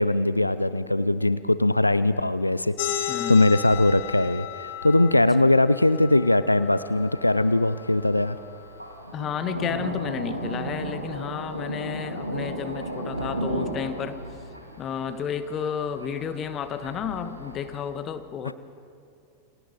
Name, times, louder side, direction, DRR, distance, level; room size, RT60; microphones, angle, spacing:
voice 1, 0.0-8.4 18.4-18.5, left 2 dB, 85° left, 15 dB, 0.5 m, -21 dB
sound 1, 2.8-7.9, left 11 dB, 50° left, 2.6 m, -35 dB
voice 2, 3.1-3.5 5.1-5.5 9.1-14.2 14.8-18.5, left 8 dB, 30° left, 11 dB, 1.4 m, -32 dB
Thunder, 6.6-17.9, right 1 dB, 90° right, 2.7 m, -35 dB
29.0 x 26.5 x 4.2 m, 2.6 s
figure-of-eight pair, 90°, 0 cm